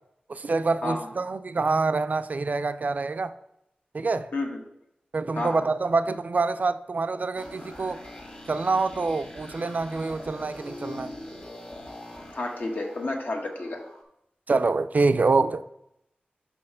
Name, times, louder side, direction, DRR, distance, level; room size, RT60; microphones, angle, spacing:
voice 1, 0.3-3.3 3.9-4.3 5.1-8.0 8.5-11.1 14.5-15.6, right 3 dB, 50° right, 0.3 m, -26 dB
sound 1, 7.3-14.0, left 1 dB, 40° left, 1.6 m, -43 dB
voice 2, 12.3-13.8, left 2 dB, 70° left, 1.1 m, -30 dB
5.5 x 4.3 x 5.5 m
wide cardioid pair, 85°, 3 cm